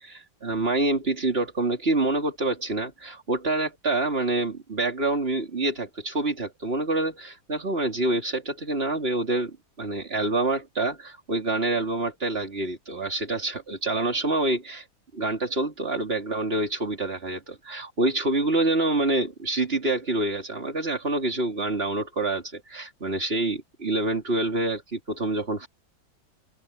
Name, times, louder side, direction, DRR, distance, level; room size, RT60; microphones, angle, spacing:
voice 1, 0.0-14.8 15.1-25.7, right 2 dB, 30° right, 3.4 m, -27 dB
open air
omnidirectional pair, 1.9 m